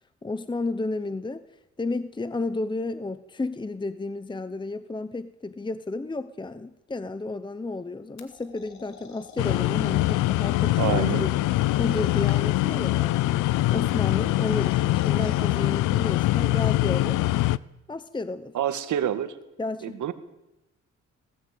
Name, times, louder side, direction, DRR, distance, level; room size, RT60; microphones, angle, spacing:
voice 1, 0.2-1.4 1.8-11.3 11.8-13.4 13.7-17.2 17.9-18.5 19.6-20.0, left 3 dB, 15° left, 13 dB, 0.9 m, -32 dB
sound 1, 8.2-10.2 11.5-12.7 14.1-15.6, left 6 dB, 65° left, 2.9 m, -46 dB
sound 2, 9.4-17.6, left 17 dB, 85° left, 0.6 m, -23 dB
voice 2, 10.8-11.3 18.5-19.3 19.8-20.1, right 10 dB, 75° right, 10 dB, 1.9 m, -27 dB
20.0 x 15.5 x 8.5 m, 0.96 s
cardioid pair, 90°, 30 cm